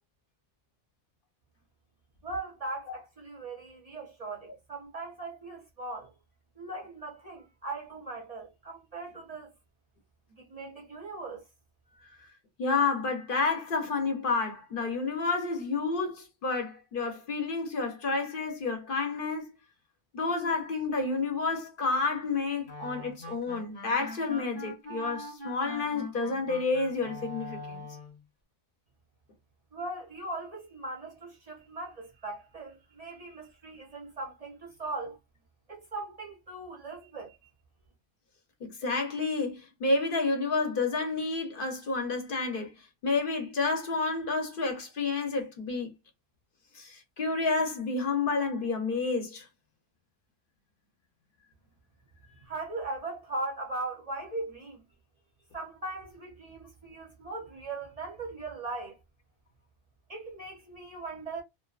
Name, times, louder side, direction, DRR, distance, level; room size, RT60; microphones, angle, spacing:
voice 1, 2.2-6.1 6.6-9.5 10.3-11.4 11.9-12.2 29.7-35.2 35.7-37.4 52.4-54.8 55.5-59.0 60.1-61.4, right 2 dB, 40° right, 0.6 m, -39 dB
voice 2, 12.6-19.5 20.1-27.9 38.6-42.7 43.0-45.9 46.7-49.5, left 3 dB, 55° left, 0.8 m, -30 dB
sound 1, 22.6-28.2, left 1 dB, 25° left, 0.7 m, -43 dB
2.5 x 2.3 x 2.3 m
omnidirectional pair, 1.1 m